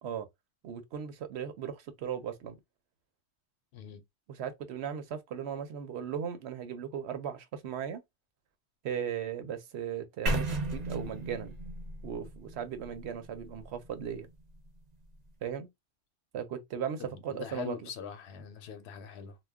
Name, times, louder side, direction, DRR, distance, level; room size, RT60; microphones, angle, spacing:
voice 1, 0.6-2.6 4.4-8.0 8.8-11.6 12.0-14.3 15.4-15.7 16.3-17.9, right 8 dB, 70° right, 0.9 m, -37 dB
voice 2, 3.7-4.0 17.0-19.4, left 7 dB, 70° left, 0.8 m, -43 dB
sound 1, 10.3-14.2, right 2 dB, 45° right, 0.7 m, -35 dB
2.2 x 2.2 x 3.5 m
omnidirectional pair, 1.2 m